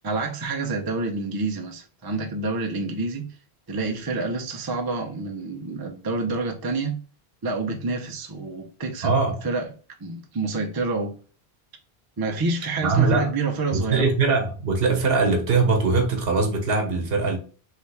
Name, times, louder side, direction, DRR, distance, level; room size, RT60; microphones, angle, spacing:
voice 1, 0.0-3.4 3.7-7.0 7.4-9.2 9.4-9.7 10.0-11.1 12.2-14.1, right 3 dB, 30° right, 0.5 m, -28 dB
voice 2, 9.0-9.4 12.8-13.3 13.7-17.4, right 4 dB, 70° right, 1.1 m, -21 dB
3.3 x 2.8 x 3.3 m
omnidirectional pair, 1.0 m